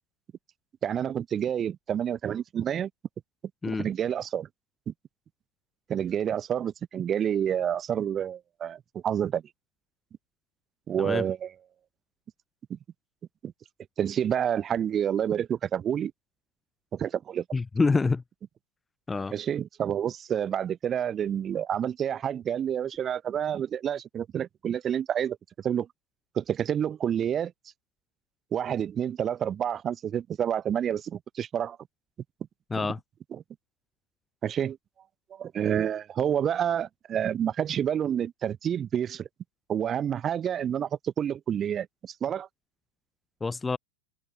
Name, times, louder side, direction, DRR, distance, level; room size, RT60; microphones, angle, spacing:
voice 1, 0.8-2.9 3.7-4.5 4.9-5.0 5.9-9.4 10.9-11.5 12.7-12.8 13.4-13.5 14.0-16.1 16.9-17.4 19.3-25.9 26.3-27.5 28.5-31.8 32.7-32.9 33.3-33.4 34.4-34.8 35.3-39.3 39.7-42.5, right 9 dB, 25° right, 0.7 m, -29 dB
voice 2, 17.5-18.2 19.1-19.3 32.7-33.0 43.4-43.8, left 4 dB, 10° left, 0.5 m, -26 dB
open air
figure-of-eight pair, 90°, 0 cm